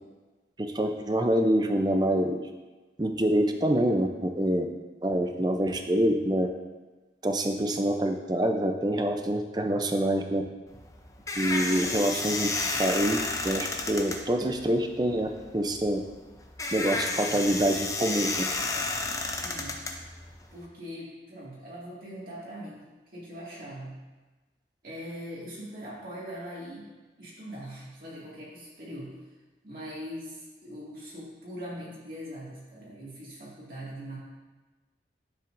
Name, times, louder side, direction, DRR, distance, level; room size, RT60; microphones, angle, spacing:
voice 1, 0.7-2.4 3.0-4.7 5.0-6.5 7.2-10.4 11.4-12.5 12.8-13.2 13.4-15.3 15.5-16.0 16.7-18.4, right 1 dB, 25° right, 5 dB, 0.6 m, -26 dB
sound 1, 10.7-20.6, left 3 dB, 20° left, 0.6 m, -32 dB
voice 2, 19.4-19.8 20.5-22.8 23.1-24.0 24.8-26.9 27.2-29.1 29.6-34.2, equal, 50° right, -7 dB, 2.1 m, -41 dB
10.0 x 7.3 x 2.6 m, 1.2 s
head